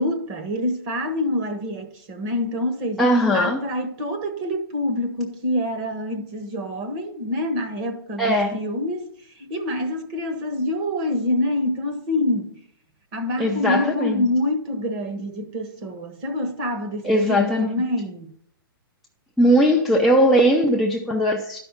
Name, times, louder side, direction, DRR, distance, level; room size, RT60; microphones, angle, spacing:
voice 1, 0.0-3.0 3.3-12.6 13.1-18.3, left 1 dB, 25° right, 1.3 m, -26 dB
voice 2, 3.0-3.6 8.2-8.5 13.4-14.3 17.0-17.7 19.4-21.6, equal, ahead, 0.4 m, -19 dB
12.5 x 5.5 x 5.7 m
hypercardioid pair, 160°, 12 cm